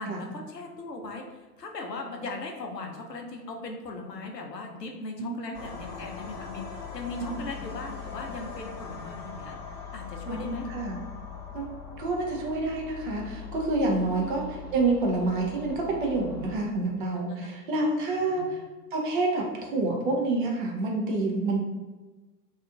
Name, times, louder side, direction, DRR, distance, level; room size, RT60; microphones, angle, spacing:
voice 1, 0.0-9.6 9.9-10.7 14.2-14.3 18.3-18.6, left 3 dB, 85° left, 2 dB, 0.6 m, -38 dB
sound 1, 5.5-16.6, left 6 dB, 30° left, 0.6 m, -41 dB
voice 2, 10.3-11.0 11.5-11.7 12.0-18.6 18.9-21.6, right 2 dB, 35° right, 0 dB, 0.4 m, -28 dB
2.8 x 2.4 x 2.3 m, 1.2 s
figure-of-eight pair, 90°, 48 cm